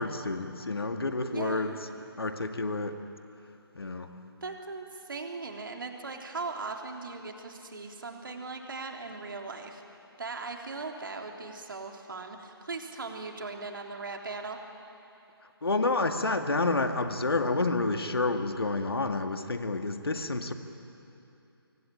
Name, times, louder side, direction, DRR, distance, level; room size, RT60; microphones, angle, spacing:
voice 1, 0.0-1.7 2.2-3.0 3.8-4.2 15.6-20.5, left 3 dB, 65° left, 6 dB, 2.1 m, -29 dB
voice 2, 1.3-1.8 4.4-9.8 10.2-14.6, right 3 dB, 55° right, 3 dB, 3.5 m, -39 dB
25.5 x 23.5 x 9.2 m, 2.8 s
figure-of-eight pair, 145°, 13 cm